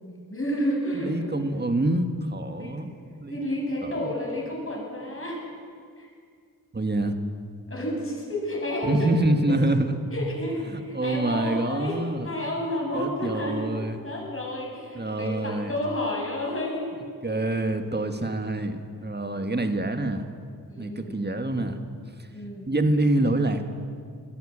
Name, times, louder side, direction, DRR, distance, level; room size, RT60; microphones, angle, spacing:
voice 1, 0.0-1.3 2.6-2.9 3.3-5.4 6.0-6.1 7.7-9.2 9.5-9.6 10.1-16.9 17.2-17.3 20.7-21.2 22.3-22.7, left 1 dB, 35° left, -2 dB, 7.3 m, -31 dB
voice 2, 0.9-2.9 3.2-3.4 3.8-4.1 6.7-7.2 8.8-10.0 10.7-12.3 12.9-14.0 15.0-15.7 17.2-20.3 20.8-21.8 22.2-22.3 22.7-23.6, right 1 dB, 25° right, 7 dB, 1.9 m, -26 dB
21.0 x 14.0 x 8.8 m, 2.2 s
cardioid pair, 70°, 37 cm